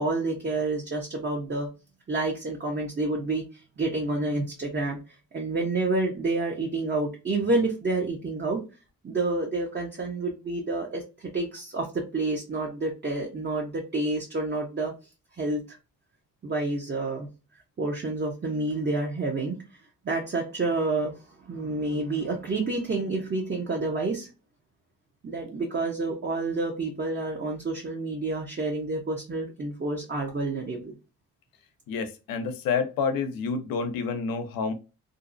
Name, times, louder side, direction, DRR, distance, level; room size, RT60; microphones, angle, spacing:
voice 1, 0.0-1.7 2.1-5.0 5.3-8.6 9.0-14.9 15.4-15.8 16.4-17.3 17.8-19.6 20.0-21.1 21.4-24.3 25.2-30.9, right 2 dB, 30° right, 0.8 m, -29 dB
voice 2, 31.9-34.7, left 5 dB, 90° left, 0.6 m, -28 dB
2.6 x 2.1 x 2.5 m
cardioid pair, 65°, 34 cm